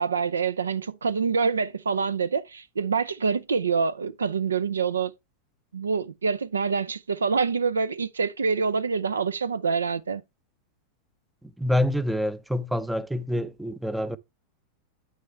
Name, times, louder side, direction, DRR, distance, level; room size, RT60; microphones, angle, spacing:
voice 1, 0.0-5.1 5.7-10.2, right 5 dB, 70° right, 0.5 m, -26 dB
voice 2, 11.4-14.2, left 1 dB, 5° right, 0.5 m, -27 dB
8.8 x 6.3 x 3.2 m
figure-of-eight pair, 90°, 0 cm